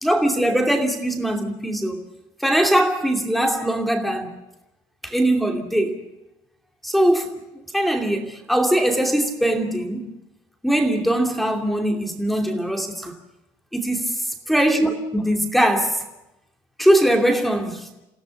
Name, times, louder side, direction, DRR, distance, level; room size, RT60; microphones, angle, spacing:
voice 1, 0.0-2.0 2.4-4.3 5.0-6.0 6.8-7.3 7.7-10.1 10.6-13.1 13.7-14.1 14.5-16.0 16.8-17.9, right 1 dB, ahead, 2.7 m, -21 dB
28.5 x 17.0 x 7.1 m
cardioid pair, 155°, 10 cm